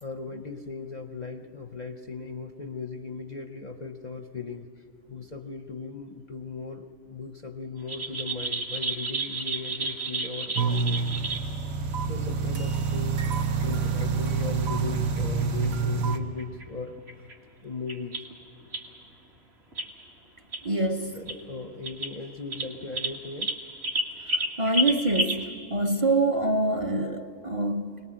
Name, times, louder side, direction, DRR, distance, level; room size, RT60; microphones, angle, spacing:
voice 1, 0.0-4.7 5.1-11.0 12.1-13.2 13.6-17.0 17.6-18.2 21.1-23.5, left 4 dB, 40° left, 5 dB, 0.7 m, -38 dB
sound 1, 7.9-11.4 12.7-12.8 13.2-13.3 13.6-13.7 14.0-14.1 14.4-14.5 14.9-15.7 16.1-16.6 17.0-17.3 17.9-18.3 18.7-18.8 19.7-19.9 20.5-20.6 21.1-21.4 21.8-22.1 22.5-25.4, right 2 dB, 50° right, 2.1 m, -31 dB
sound 2, 10.6-16.2, right 5 dB, 90° right, 1.5 m, -27 dB
voice 2, 20.6-21.1 24.6-28.0, right 2 dB, 30° right, 6 dB, 0.8 m, -25 dB
22.5 x 19.5 x 7.6 m, 2.8 s
omnidirectional pair, 1.4 m